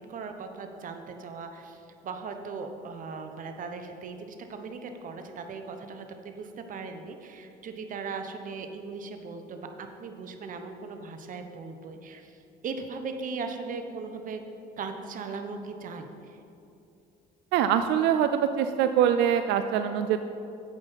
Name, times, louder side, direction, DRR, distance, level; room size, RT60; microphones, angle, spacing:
voice 1, 0.1-12.3 12.6-14.4 14.8-16.4, right 4 dB, 50° right, 6 dB, 1.1 m, -38 dB
voice 2, 17.5-20.2, right 9 dB, 90° right, 9 dB, 0.4 m, -24 dB
9.0 x 8.0 x 5.7 m, 2.7 s
cardioid pair, 110°, 17 cm